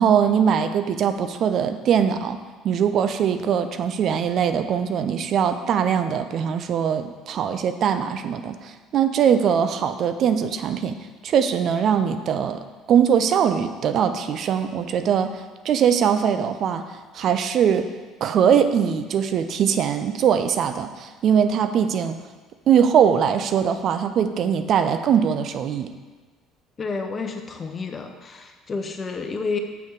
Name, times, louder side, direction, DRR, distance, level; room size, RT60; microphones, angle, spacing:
voice 1, 0.0-2.4 2.6-10.9 11.2-12.6 12.9-15.3 15.6-16.8 17.1-17.9 18.2-22.2 22.7-25.9, right 8 dB, 50° right, 9 dB, 0.5 m, -21 dB
voice 2, 26.8-29.6, left 4 dB, 35° left, 5 dB, 0.9 m, -30 dB
7.1 x 6.3 x 4.7 m, 1.4 s
figure-of-eight pair, 55°, 0 cm